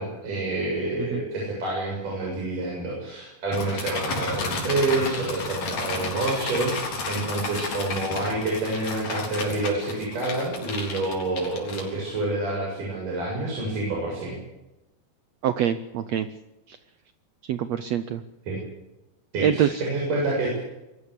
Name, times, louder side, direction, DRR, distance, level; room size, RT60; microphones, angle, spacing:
voice 1, 0.0-14.4 18.5-18.6 19.3-20.6, right 2 dB, 60° right, -3 dB, 8.9 m, -28 dB
sound 1, 3.5-12.2, left 3 dB, 60° left, 5.3 m, -32 dB
voice 2, 15.4-16.3 16.7-16.8 17.5-18.2 19.4-19.7, right 10 dB, 85° right, 12 dB, 1.5 m, -24 dB
24.5 x 14.5 x 8.4 m, 0.95 s
omnidirectional pair, 4.2 m